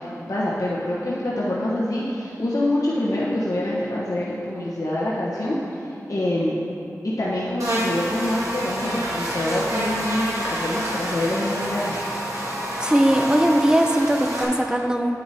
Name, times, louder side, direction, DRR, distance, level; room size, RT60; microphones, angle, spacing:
voice 1, 0.3-6.6 7.0-12.0, left 1 dB, 70° left, -7 dB, 1.0 m, -25 dB
Buzz, 7.6-14.4, right 1 dB, 60° right, 1.6 m, -28 dB
voice 2, 12.8-15.1, right 1 dB, 10° right, 4 dB, 0.6 m, -19 dB
9.0 x 8.5 x 2.7 m, 2.7 s
wide cardioid pair, 50°, 6 cm